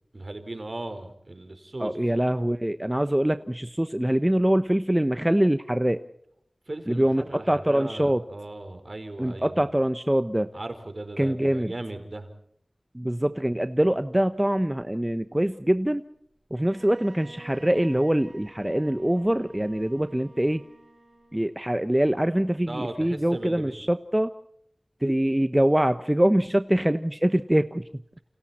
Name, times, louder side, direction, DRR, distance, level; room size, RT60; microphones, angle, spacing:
voice 1, 0.1-2.0 6.7-9.7 10.5-12.3 22.7-23.9, right 2 dB, 55° right, 8 dB, 4.7 m, -37 dB
voice 2, 1.8-6.0 6.9-8.2 9.2-10.5 11.2-11.7 12.9-16.0 16.5-20.6 21.3-24.3 25.0-27.8, right 1 dB, 20° right, 10 dB, 1.0 m, -24 dB
Bowed string instrument, 16.5-21.6, right 2 dB, 80° right, 6.9 m, -50 dB
29.5 x 28.5 x 4.4 m, 0.70 s
wide cardioid pair, 40°, 0 cm